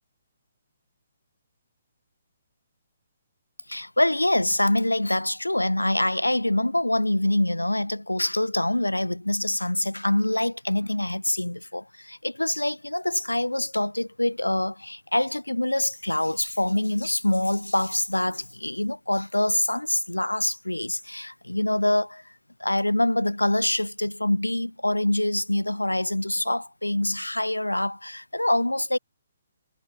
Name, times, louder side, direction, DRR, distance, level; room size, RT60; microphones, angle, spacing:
voice 1, 3.7-22.2 22.6-29.0, left 1 dB, 90° left, 2.0 m, -25 dB
figure-of-eight pair, 130°, 0 cm